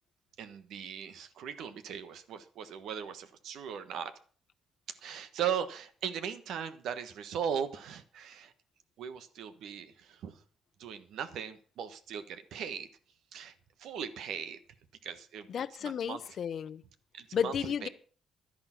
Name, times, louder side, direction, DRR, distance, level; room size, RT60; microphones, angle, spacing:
voice 1, 0.4-4.1 4.9-8.5 9.0-10.4 10.8-12.9 13.3-14.6 15.0-15.5 15.8-16.4 17.1-17.9, right 8 dB, 80° right, 1.4 m, -38 dB
voice 2, 15.5-16.8 17.3-17.9, left 8 dB, 60° left, 0.9 m, -33 dB
11.5 x 10.5 x 6.0 m
cardioid pair, 90°, 0 cm